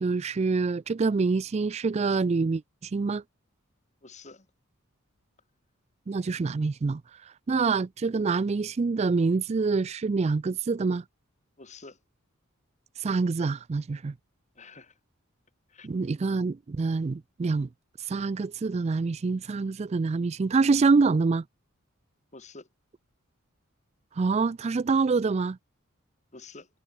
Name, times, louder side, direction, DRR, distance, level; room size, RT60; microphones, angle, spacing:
voice 1, 0.0-3.2 6.1-11.0 13.0-14.1 15.8-17.7 18.0-21.4 24.2-25.6, right 4 dB, 30° right, 0.3 m, -26 dB
voice 2, 4.0-4.4 11.6-12.0 14.6-14.9 15.7-15.9 22.3-22.7 26.3-26.7, left 3 dB, 35° left, 2.9 m, -47 dB
head